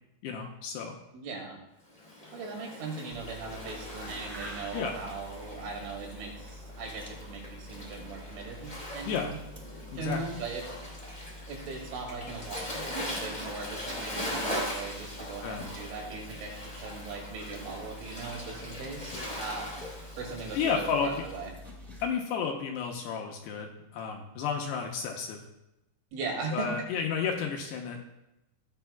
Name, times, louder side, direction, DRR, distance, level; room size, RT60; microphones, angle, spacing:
voice 1, 0.2-0.9 4.7-5.0 9.1-9.3 9.9-10.2 15.4-15.6 20.5-21.1 22.0-25.4 26.5-28.0, left 6 dB, 75° left, 2 dB, 2.6 m, -32 dB
voice 2, 1.1-1.6 2.3-9.4 9.9-10.6 11.5-19.8 20.2-21.5 26.1-26.7, right 4 dB, 85° right, 0 dB, 4.7 m, -39 dB
Waves surf, 1.9-21.4, left 1 dB, 15° left, 2.0 m, -41 dB
sound 1, 3.1-22.1, left 1 dB, 10° right, 3.7 m, -47 dB
16.5 x 9.0 x 2.3 m, 0.91 s
omnidirectional pair, 5.5 m